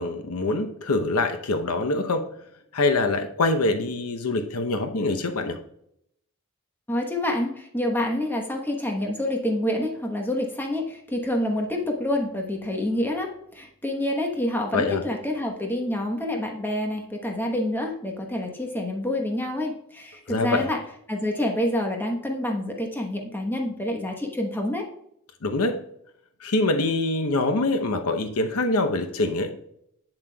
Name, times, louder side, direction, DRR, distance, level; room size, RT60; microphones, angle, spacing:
voice 1, 0.0-2.3 2.7-5.6 14.7-15.0 20.3-20.7 25.4-25.8 26.4-29.6, left 2 dB, 85° left, 6 dB, 0.8 m, -24 dB
voice 2, 6.9-20.8 21.1-24.9, left 1 dB, 10° left, 2 dB, 1.0 m, -27 dB
8.0 x 7.3 x 2.3 m, 0.73 s
head